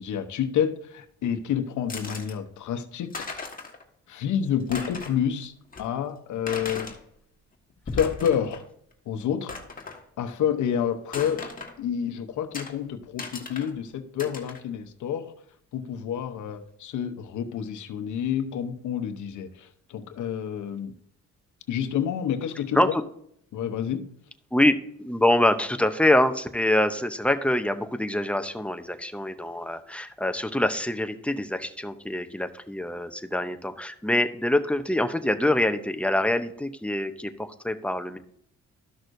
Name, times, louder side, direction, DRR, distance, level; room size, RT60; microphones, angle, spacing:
voice 1, 0.0-3.4 4.1-7.0 7.9-8.7 9.1-9.5 10.2-11.5 11.8-15.3 15.7-21.0 21.7-23.0 23.5-24.1, left 8 dB, 75° left, 8 dB, 0.9 m, -29 dB
sound 1, 1.9-2.3 2.8-2.9 3.1-3.8 4.2-4.3 4.6-5.2 5.7-5.8 6.5-7.0 7.7-8.7 8.9-9.0 9.5-10.0 11.1-11.8 12.5-12.7 13.2-13.7 14.2-14.6, left 3 dB, 30° left, 1.5 m, -36 dB
voice 2, 24.5-38.2, left 1 dB, 5° left, 8 dB, 0.7 m, -25 dB
13.0 x 6.1 x 2.6 m, 0.68 s
cardioid pair, 90°, 30 cm